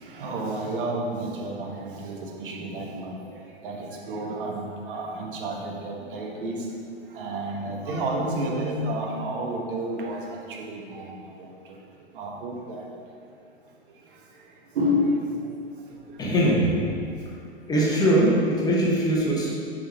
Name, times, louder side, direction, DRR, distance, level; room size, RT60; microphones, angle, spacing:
voice 1, 0.0-3.2 3.6-6.6 7.1-10.2 10.6-11.1 11.4-11.5 12.2-12.8 14.7-15.2, equal, 50° right, 0 dB, 1.2 m, -30 dB
voice 2, 16.2-16.7 17.7-19.5, right 1 dB, 10° left, -4 dB, 1.1 m, -21 dB
5.6 x 5.0 x 4.4 m, 2.3 s
figure-of-eight pair, 110°, 33 cm